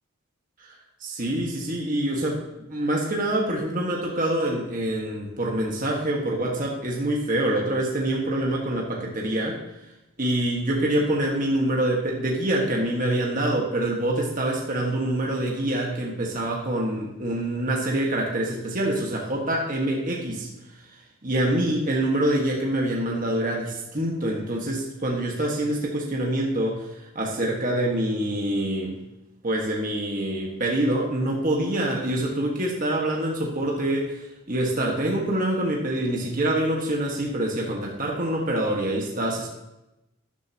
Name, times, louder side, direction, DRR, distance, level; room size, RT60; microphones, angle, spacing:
voice 1, 1.0-2.4 2.7-9.6 10.2-20.5 21.2-26.9 27.1-29.0 29.4-39.5, right 1 dB, 40° right, -2 dB, 1.6 m, -25 dB
13.0 x 10.5 x 3.0 m, 0.92 s
head